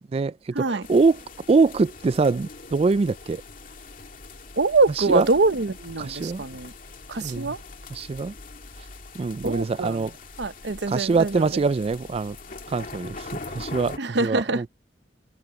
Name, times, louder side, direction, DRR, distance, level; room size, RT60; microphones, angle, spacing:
voice 1, 0.1-1.2 1.5-3.4 5.0-5.3 6.0-6.4 7.2-7.6 7.9-8.3 9.1-10.1 10.9-12.4 12.7-14.7, right 4 dB, 35° right, 0.3 m, -23 dB
sound 1, 0.8-14.0, left 3 dB, 50° left, 2.4 m, -42 dB
voice 2, 4.6-6.7 7.1-7.6 9.4-10.1 10.4-11.5 14.0-14.7, right 3 dB, 70° right, 0.9 m, -24 dB
head